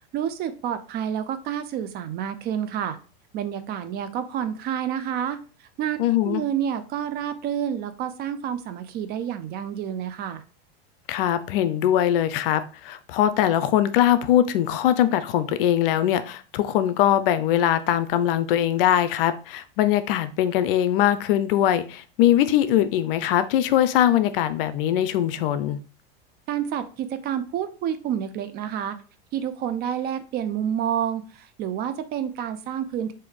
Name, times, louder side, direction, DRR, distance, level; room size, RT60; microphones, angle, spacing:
voice 1, 0.1-3.0 3.3-10.4 26.5-29.0 29.3-33.1, right 9 dB, 35° right, 0.4 m, -29 dB
voice 2, 6.0-6.4 11.1-25.8, left 11 dB, 70° left, 0.5 m, -21 dB
3.6 x 2.6 x 3.5 m
hypercardioid pair, 115°, 29 cm